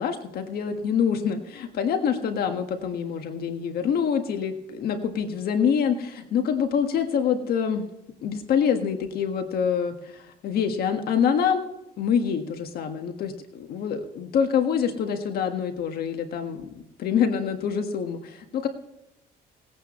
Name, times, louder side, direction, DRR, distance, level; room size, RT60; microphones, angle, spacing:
voice 1, 0.0-7.9 8.2-11.7 12.0-16.7 17.0-18.7, left 7 dB, 65° left, 6 dB, 1.6 m, -26 dB
19.5 x 9.1 x 3.2 m, 0.87 s
cardioid pair, 110°, 17 cm